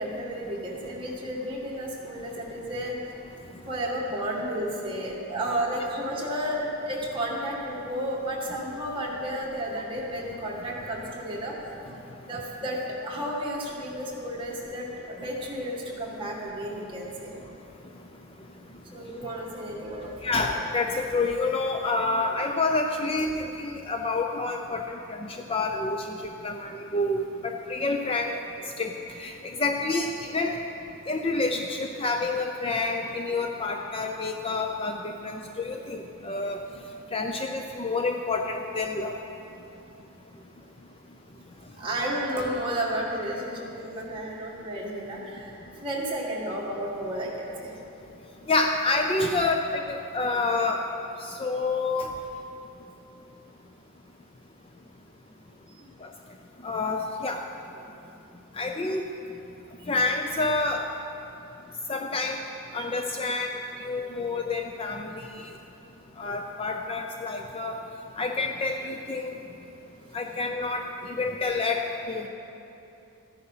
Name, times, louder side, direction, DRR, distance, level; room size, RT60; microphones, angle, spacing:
voice 1, 0.0-2.9 3.6-11.6 12.2-17.3 18.9-20.5 41.7-45.5 45.8-47.7 55.8-55.9 59.8-59.9 62.8-63.0, right 1 dB, 25° right, -4 dB, 2.0 m, -32 dB
voice 2, 20.2-28.3 28.8-28.9 29.2-30.1 30.3-30.6 31.1-36.6 37.1-39.1 48.5-50.8 51.2-52.1 56.0-56.1 56.6-57.4 58.6-59.0 59.9-60.8 61.9-62.4 62.7-65.5 66.2-67.8 68.2-69.3 70.1-72.3, left 3 dB, 25° left, 3 dB, 0.5 m, -28 dB
14.0 x 9.6 x 5.6 m, 2.9 s
head